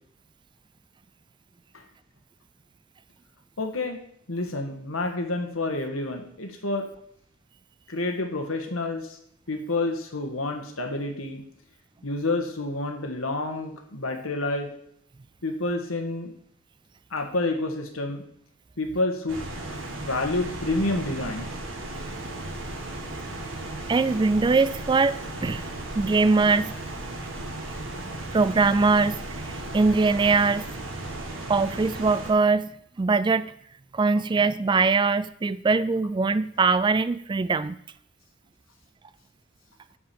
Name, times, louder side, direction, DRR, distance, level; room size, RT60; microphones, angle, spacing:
voice 1, 3.6-4.0 4.3-6.9 7.9-9.2 9.5-11.4 12.0-14.7 15.4-16.3 17.1-18.2 18.8-19.4 19.7-21.5, left 2 dB, 85° left, 5 dB, 1.7 m, -29 dB
sound 1, 19.3-32.3, right 2 dB, 70° right, 1.9 m, -35 dB
voice 2, 23.9-25.6 26.0-26.8 28.3-29.2 29.4-30.7 31.5-32.7 33.0-33.5 33.9-37.8, right 4 dB, 20° right, 16 dB, 0.3 m, -22 dB
9.7 x 5.1 x 7.6 m, 0.69 s
head